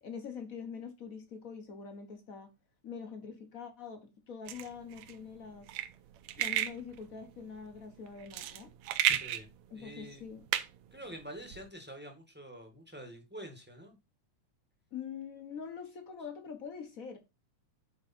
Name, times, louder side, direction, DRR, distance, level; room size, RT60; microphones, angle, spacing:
voice 1, 0.0-2.5 2.8-5.7 6.4-8.7 9.7-10.4 14.9-17.2, left 6 dB, 55° left, 0.9 m, -44 dB
sound 1, 4.5-11.7, right 12 dB, 75° right, 2.0 m, -35 dB
voice 2, 9.1-9.5 9.7-10.2 10.9-14.0, equal, 10° right, 0.7 m, -47 dB
9.6 x 4.9 x 4.3 m
omnidirectional pair, 3.4 m